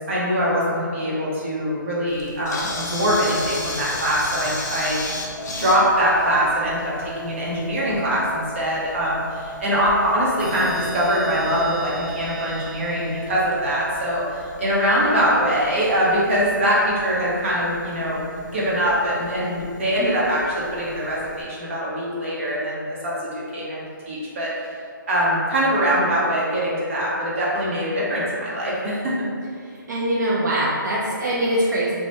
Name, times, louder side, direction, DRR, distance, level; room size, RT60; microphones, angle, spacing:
voice 1, 0.1-5.0 5.6-24.7 25.1-29.2, equal, 35° right, -6 dB, 0.8 m, -23 dB
Camera, 2.1-21.4, left 2 dB, 50° left, 0.5 m, -37 dB
sound 1, 5.4-14.0, right 1 dB, 25° left, 0.8 m, -38 dB
sound 2, 10.4-14.0, right 3 dB, 85° right, 1.2 m, -37 dB
voice 2, 29.6-31.9, right 1 dB, 55° right, -5 dB, 0.4 m, -23 dB
2.9 x 2.1 x 3.2 m, 2.3 s
hypercardioid pair, 165°, 11 cm